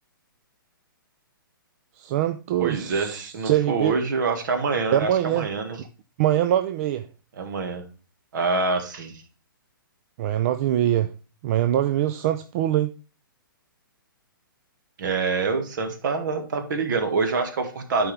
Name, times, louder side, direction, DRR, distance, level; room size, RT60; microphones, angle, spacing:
voice 1, 2.0-4.0 4.9-5.5 6.2-7.0 10.2-11.1 11.4-12.9, right 12 dB, 40° right, 0.5 m, -23 dB
voice 2, 2.6-5.8 7.4-7.8 8.3-9.2 15.0-18.1, right 4 dB, 60° right, 1.6 m, -26 dB
11.5 x 4.7 x 3.3 m
hypercardioid pair, 135°, 12 cm